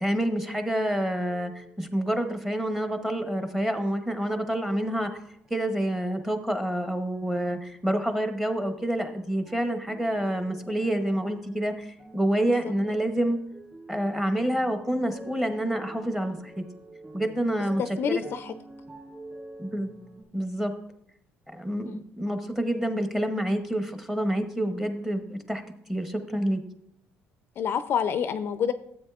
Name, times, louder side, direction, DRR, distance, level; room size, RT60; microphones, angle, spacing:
voice 1, 0.0-5.1 5.5-11.9 12.1-13.4 13.9-16.6 17.1-18.2 19.6-19.9 20.3-20.7 21.5-25.6 25.9-26.6, right 1 dB, 5° right, 7 dB, 0.8 m, -28 dB
sound 1, 1.2-2.2 2.8-3.8 4.4-5.1 5.4-6.8 7.1-8.0 8.6-9.1 9.4-20.2, right 2 dB, 20° right, 2.1 m, -47 dB
voice 2, 17.8-18.5 21.9-22.0 27.6-28.7, left 8 dB, 50° left, 11 dB, 0.4 m, -27 dB
13.0 x 8.0 x 2.3 m, 0.74 s
cardioid pair, 130°, 5 cm